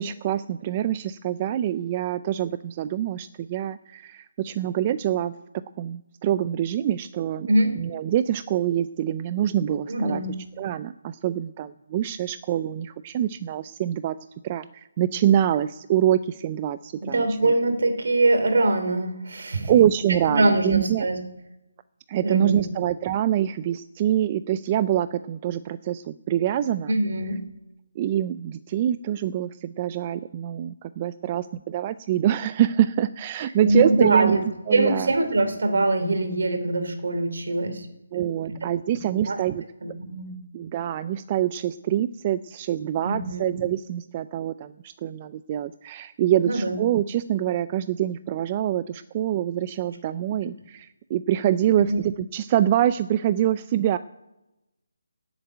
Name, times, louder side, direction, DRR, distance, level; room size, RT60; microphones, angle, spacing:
voice 1, 0.0-5.3 5.8-7.5 7.8-10.2 10.6-14.2 14.4-17.5 19.7-21.1 22.1-26.9 28.0-34.4 34.7-35.1 38.1-39.6 40.5-54.0, right 11 dB, 25° right, 14 dB, 0.4 m, -25 dB
voice 2, 9.9-10.4 17.0-19.7 20.3-21.2 22.2-22.6 26.9-27.4 33.6-34.4 34.7-37.9 38.5-38.6 39.0-39.4 39.8-40.4 43.0-43.5 46.4-46.7 51.9-52.0, right 2 dB, 65° right, 7 dB, 2.9 m, -23 dB
10.0 x 8.0 x 9.4 m, 0.97 s
figure-of-eight pair, 165°, 0 cm